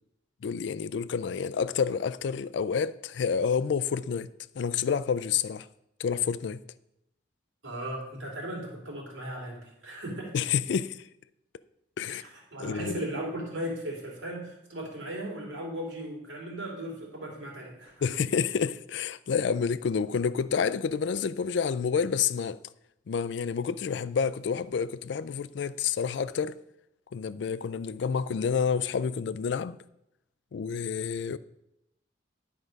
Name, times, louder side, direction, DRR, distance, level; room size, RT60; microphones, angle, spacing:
voice 1, 0.4-4.3 4.6-5.7 6.0-6.6 10.3-11.1 12.0-12.2 12.6-13.0 18.0-22.6 23.1-26.6 27.1-29.8 30.5-31.4, left 6 dB, 70° left, 0.3 m, -29 dB
voice 2, 7.6-10.4 12.1-17.9, right 1 dB, 90° right, 3.1 m, -37 dB
11.0 x 4.8 x 5.2 m
head